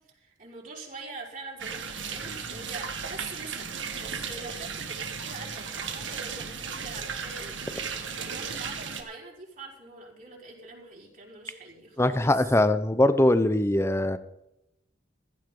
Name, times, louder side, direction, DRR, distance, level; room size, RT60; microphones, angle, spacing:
voice 1, 0.1-12.6, right 3 dB, 45° right, -2 dB, 4.8 m, -44 dB
sound 1, 1.6-9.0, right 6 dB, 90° right, 2.0 m, -35 dB
voice 2, 12.0-14.2, left 1 dB, 15° left, 12 dB, 0.9 m, -22 dB
16.0 x 14.5 x 3.9 m, 0.86 s
head